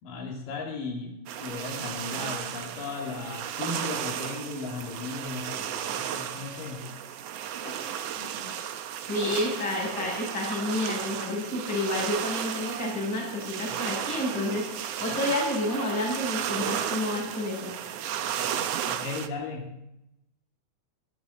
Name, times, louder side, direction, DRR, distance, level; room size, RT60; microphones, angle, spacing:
voice 1, 0.0-6.9 7.6-8.5 18.9-19.8, left 4 dB, 90° left, 1 dB, 4.0 m, -37 dB
sound 1, 1.3-19.3, right 9 dB, 65° right, 1.7 m, -34 dB
voice 2, 9.1-17.7, left 1 dB, 35° left, -4 dB, 8.8 m, -30 dB
24.5 x 14.0 x 4.2 m, 0.84 s
omnidirectional pair, 3.8 m